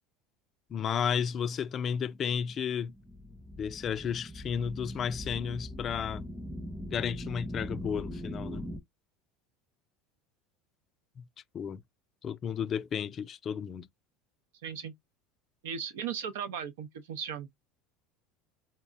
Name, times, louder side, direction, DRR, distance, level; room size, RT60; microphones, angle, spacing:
voice 1, 0.7-2.9 3.6-6.3 6.9-8.6 11.2-11.3 11.5-11.8 12.2-13.9, left 7 dB, 40° left, 0.3 m, -33 dB
sound 1, 2.1-8.8, equal, 5° right, 0.7 m, -41 dB
voice 2, 14.6-14.9 15.6-17.5, right 8 dB, 80° right, 0.6 m, -37 dB
3.9 x 2.1 x 2.5 m
supercardioid pair, 95°, 0 cm